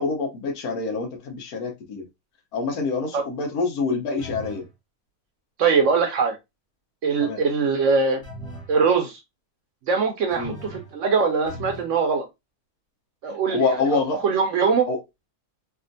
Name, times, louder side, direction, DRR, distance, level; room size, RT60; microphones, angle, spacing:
voice 1, 0.0-2.0 2.5-4.6 7.2-7.4 10.4-10.5 13.5-14.2 14.9-15.0, left 4 dB, 70° left, 1.3 m, -26 dB
sound 1, 4.2-4.7 8.2-8.8 10.3-11.0 11.5-12.0, equal, 5° left, 0.7 m, -38 dB
voice 2, 5.6-6.4 7.0-8.2 8.7-9.2 9.9-12.3 13.2-14.9, right 5 dB, 65° right, 0.8 m, -22 dB
3.4 x 2.4 x 2.5 m
omnidirectional pair, 1.6 m